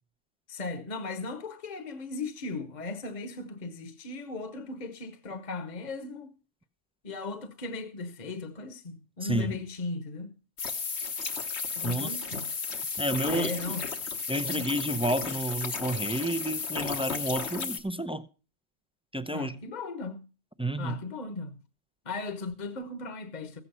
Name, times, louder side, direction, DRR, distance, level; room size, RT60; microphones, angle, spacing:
voice 1, 0.5-6.3 7.0-10.3 11.8-12.5 13.3-13.8 14.3-14.7 19.3-20.2 20.8-21.6 22.0-23.6, left 3 dB, 40° left, 1.1 m, -37 dB
voice 2, 9.2-9.6 11.8-12.1 13.0-13.5 14.3-18.3 19.1-19.6 20.6-21.0, right 1 dB, 10° right, 0.4 m, -30 dB
sound 1, 10.6-17.8, left 5 dB, 75° left, 1.5 m, -34 dB
15.0 x 8.2 x 5.5 m
omnidirectional pair, 1.1 m